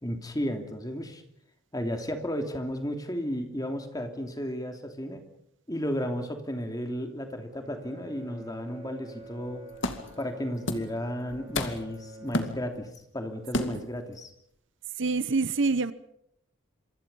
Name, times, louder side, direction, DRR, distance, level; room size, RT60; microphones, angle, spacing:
voice 1, 0.0-1.2 1.7-5.2 5.7-9.6 10.2-14.3, equal, 15° left, 2.9 m, -33 dB
Bowed string instrument, 7.5-13.0, right 1 dB, 25° right, 5.5 m, -48 dB
sound 1, 9.3-9.4 9.8-10.2 10.7-11.0 11.3-12.0 12.3-13.0 13.5-14.0, left 1 dB, 55° left, 2.4 m, -31 dB
voice 2, 15.0-15.9, right 3 dB, 60° right, 0.9 m, -26 dB
27.5 x 24.5 x 5.5 m
head